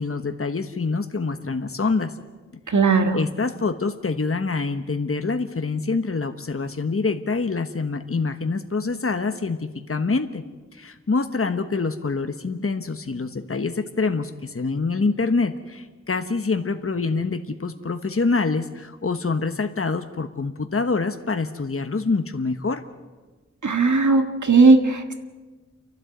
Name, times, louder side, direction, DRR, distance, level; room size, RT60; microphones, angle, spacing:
voice 1, 0.0-2.1 2.7-2.8 3.1-10.4 10.7-22.8, left 4 dB, 50° left, 7 dB, 1.2 m, -25 dB
voice 2, 2.7-3.2 23.6-25.1, right 4 dB, 80° right, 6 dB, 1.7 m, -17 dB
30.0 x 12.0 x 8.0 m, 1.3 s
wide cardioid pair, 65°, 29 cm